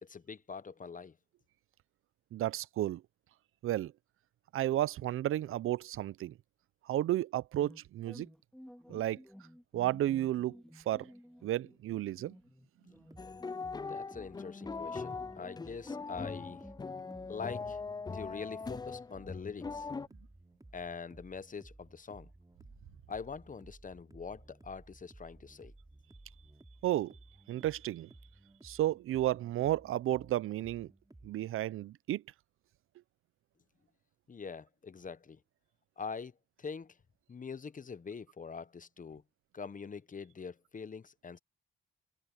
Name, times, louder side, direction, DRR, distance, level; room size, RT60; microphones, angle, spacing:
voice 1, 0.0-1.2 13.9-16.6 17.3-17.8 18.1-19.9 20.7-22.3 23.1-25.7 34.3-35.4 36.0-36.3 36.6-37.0 37.3-39.2 39.5-41.4, left 5 dB, 40° left, 1.0 m, -44 dB
voice 2, 2.3-3.0 3.6-3.9 4.5-6.4 6.9-8.3 8.9-9.2 9.7-10.6 10.9-11.1 11.4-12.3 26.8-27.2 27.5-28.1 28.6-30.9 31.2-32.2, right 13 dB, 80° right, 0.6 m, -32 dB
sound 1, 7.6-17.3, equal, 5° left, 3.2 m, -54 dB
sound 2, 12.9-31.3, right 2 dB, 15° right, 3.9 m, -58 dB
sound 3, 13.2-20.1, left 4 dB, 20° left, 0.4 m, -41 dB
supercardioid pair, 55°, 21 cm